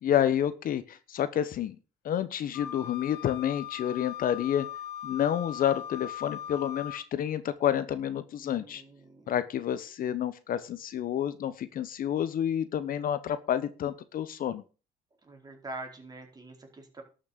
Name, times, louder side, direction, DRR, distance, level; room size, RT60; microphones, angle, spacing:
voice 1, 0.0-1.8 2.0-4.7 5.0-8.8 9.3-14.6, left 10 dB, 55° left, 14 dB, 1.1 m, -29 dB
Wind instrument woodwind instrument, 2.5-7.0, left 10 dB, 85° left, 2.0 m, -40 dB
voice 2, 8.4-9.4 15.2-17.0, right 2 dB, 25° right, 2 dB, 4.5 m, -45 dB
12.0 x 6.5 x 6.8 m, 0.34 s
cardioid pair, 110°, 17 cm